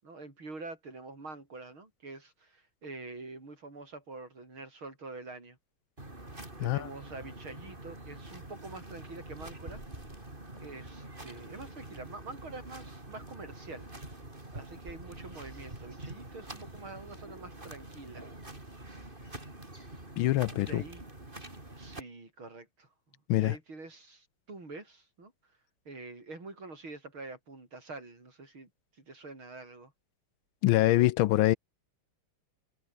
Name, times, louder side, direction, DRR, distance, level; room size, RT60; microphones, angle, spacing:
voice 1, 0.0-5.6 6.5-9.8 10.6-13.9 14.5-18.3 20.6-21.1 21.8-25.3 25.9-29.9, right 3 dB, 75° right, 7.0 m, -46 dB
sound 1, 6.0-22.0, right 2 dB, 25° right, 4.8 m, -46 dB
voice 2, 20.2-20.8 23.3-23.5 30.6-31.6, left 16 dB, 80° left, 1.4 m, -24 dB
omnidirectional pair, 2.3 m